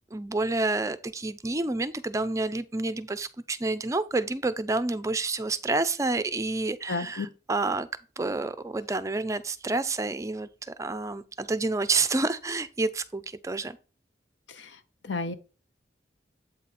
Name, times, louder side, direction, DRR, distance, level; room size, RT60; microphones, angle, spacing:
voice 1, 0.1-7.9 8.2-13.8, right 3 dB, 15° right, 0.4 m, -29 dB
voice 2, 6.9-7.3 14.5-14.8 15.0-15.3, left 3 dB, 85° left, 0.9 m, -32 dB
8.1 x 3.9 x 4.2 m
head